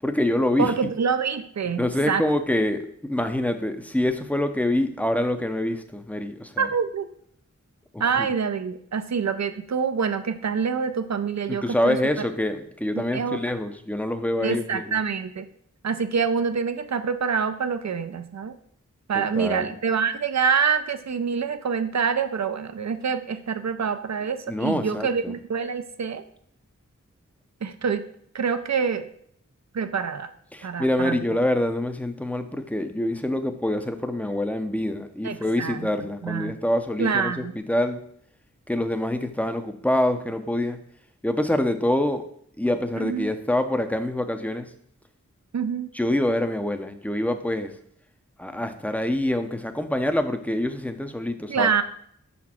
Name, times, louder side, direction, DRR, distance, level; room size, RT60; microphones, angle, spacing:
voice 1, 0.0-0.7 1.8-6.7 7.9-8.3 11.5-15.0 19.1-19.7 24.5-25.3 30.5-38.0 38.7-40.8 41.2-42.2 42.6-44.7 45.9-47.7 48.4-51.7, left 1 dB, 5° left, 7 dB, 0.6 m, -26 dB
voice 2, 0.6-2.2 6.6-7.1 8.0-12.0 13.1-13.4 14.4-15.5 15.8-18.5 19.1-26.2 27.6-28.0 28.3-29.1 29.7-30.3 30.6-31.4 35.2-35.9 36.2-36.6 37.0-37.5 43.0-43.3 45.5-45.9 51.5-51.8, right 6 dB, 60° right, 10 dB, 0.5 m, -26 dB
5.7 x 4.2 x 4.3 m, 0.66 s
wide cardioid pair, 45°, 31 cm